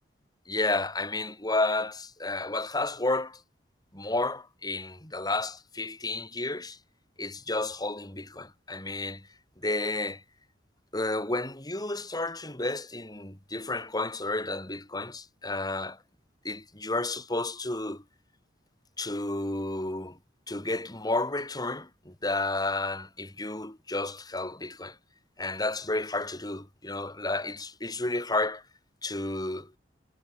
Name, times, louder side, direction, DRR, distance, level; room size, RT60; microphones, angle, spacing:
voice 1, 0.5-3.4 3.9-6.8 7.2-9.3 9.6-10.2 10.9-16.0 16.4-18.0 19.0-20.2 20.5-25.0 25.4-28.6 29.0-29.7, left 2 dB, 20° left, 5.2 m, -31 dB
head